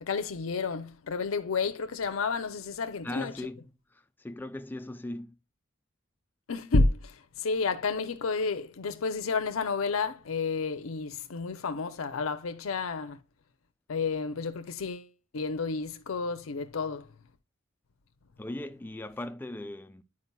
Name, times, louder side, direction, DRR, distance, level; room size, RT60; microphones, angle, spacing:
voice 1, 0.0-3.3 6.5-13.2 13.9-17.1, left 4 dB, 80° left, 0.6 m, -30 dB
voice 2, 3.0-3.6 4.2-5.3 18.4-20.0, left 1 dB, 10° left, 0.3 m, -38 dB
9.6 x 4.8 x 2.2 m
head